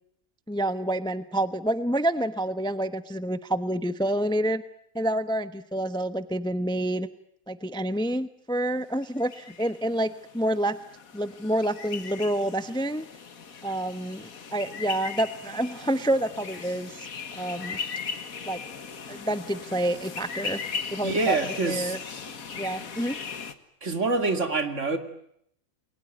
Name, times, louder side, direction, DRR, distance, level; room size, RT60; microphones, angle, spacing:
voice 1, 0.5-4.6 4.9-7.1 7.5-10.8 11.1-13.0 13.6-17.1 17.3-17.8 18.4-18.6 19.1-20.6 20.9-22.0 22.5-23.2, right 1 dB, 5° left, 0.9 m, -28 dB
sound 1, 9.0-23.5, left 6 dB, 80° left, 2.0 m, -38 dB
voice 2, 21.0-22.0 23.8-25.0, right 3 dB, 55° right, 2.8 m, -26 dB
29.0 x 22.0 x 9.3 m
omnidirectional pair, 1.5 m